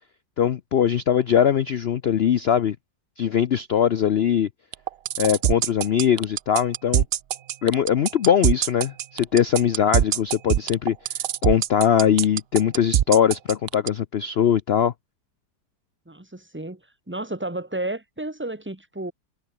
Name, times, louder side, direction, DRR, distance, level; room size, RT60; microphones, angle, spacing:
voice 1, 0.4-2.8 3.2-4.5 5.2-7.1 7.6-11.0 11.4-14.9, left 9 dB, 65° left, 0.6 m, -21 dB
sound 1, 4.7-13.9, right 11 dB, 85° right, 0.5 m, -22 dB
voice 2, 16.1-19.1, right 2 dB, 5° right, 1.8 m, -32 dB
omnidirectional pair, 1.8 m